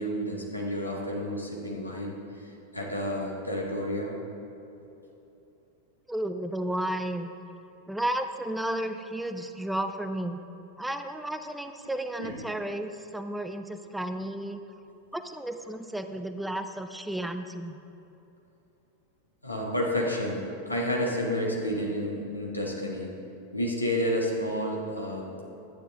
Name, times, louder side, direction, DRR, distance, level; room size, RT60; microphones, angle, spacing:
voice 1, 0.0-4.1 12.2-12.4 19.4-23.1 23.5-25.3, equal, 85° left, -2 dB, 1.6 m, -30 dB
voice 2, 6.1-7.3 7.9-10.4 10.8-14.6 15.1-17.8, right 1 dB, 5° right, 8 dB, 0.4 m, -33 dB
12.0 x 9.3 x 3.6 m, 3.0 s
figure-of-eight pair, 90°, 0 cm